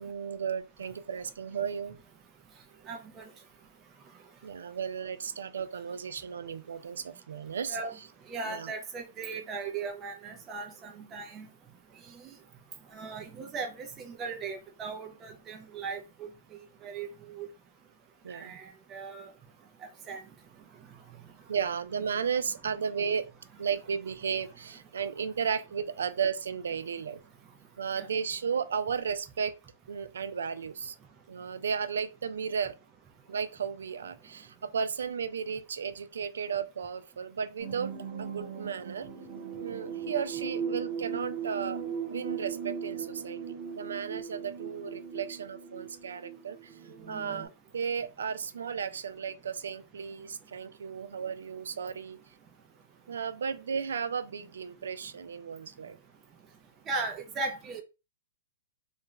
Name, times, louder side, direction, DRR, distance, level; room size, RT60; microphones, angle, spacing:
voice 1, 0.0-1.9 4.4-7.8 8.4-8.7 18.2-18.6 21.5-23.3 23.6-27.2 27.8-29.5 29.9-31.0 31.3-32.7 33.3-37.9 38.2-39.1 39.6-43.4 43.7-46.8 47.1-52.2 53.1-56.0, right 6 dB, 85° right, 0.4 m, -34 dB
voice 2, 2.8-3.3 7.7-7.9 8.2-11.5 11.9-12.3 12.9-17.5 18.3-19.3 19.8-20.2 20.8-21.0 28.0-28.1 56.9-57.8, right 4 dB, 20° right, 0.5 m, -38 dB
sound 1, 37.6-47.5, right 6 dB, 50° right, 1.2 m, -38 dB
2.4 x 2.1 x 3.0 m
hypercardioid pair, 145°, 0 cm